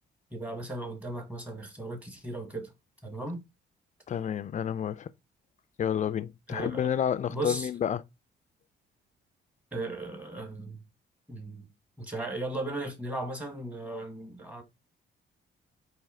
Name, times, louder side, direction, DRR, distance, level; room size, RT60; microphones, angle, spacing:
voice 1, 0.3-2.7 3.0-3.4 6.5-6.9 7.3-7.7 9.7-10.8 11.3-11.7 12.0-14.6, right 2 dB, 5° right, 1.4 m, -36 dB
voice 2, 4.1-5.1 5.8-8.0, left 9 dB, 40° left, 0.4 m, -30 dB
4.2 x 2.8 x 3.6 m
cardioid pair, 90°, 20 cm